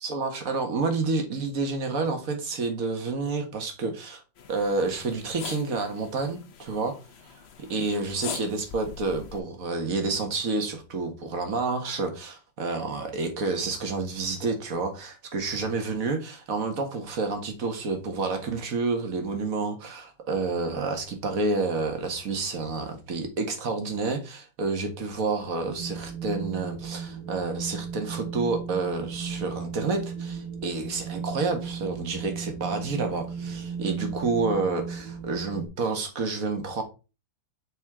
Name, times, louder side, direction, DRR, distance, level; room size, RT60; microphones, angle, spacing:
voice 1, 0.0-4.2 4.5-6.9 7.2-36.8, right 3 dB, 45° right, 1.8 m, -29 dB
sound 1, 4.4-9.4, left 7 dB, 60° left, 0.6 m, -42 dB
Wind, 25.7-35.7, right 6 dB, 90° right, 2.0 m, -36 dB
7.9 x 4.4 x 3.6 m
omnidirectional pair, 2.1 m